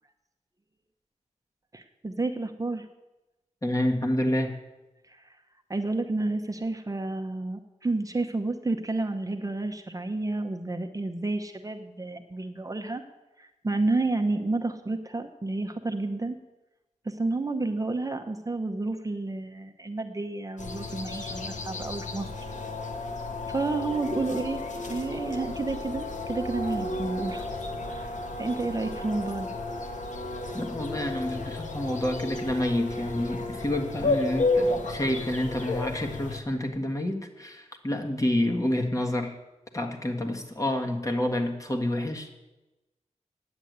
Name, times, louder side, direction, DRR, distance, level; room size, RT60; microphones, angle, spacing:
voice 1, 1.7-2.9 5.1-5.4 5.7-13.0 13.4-16.4 17.0-22.3 23.5-27.5 27.8-29.5, right 2 dB, 25° right, 5 dB, 0.8 m, -30 dB
voice 2, 3.6-4.5 30.5-39.3 39.7-42.4, left 1 dB, 25° left, 2 dB, 1.6 m, -28 dB
sound 1, 20.6-36.4, left 2 dB, 80° left, 1.3 m, -32 dB
9.7 x 8.0 x 9.4 m, 1.1 s
wide cardioid pair, 100°, 13 cm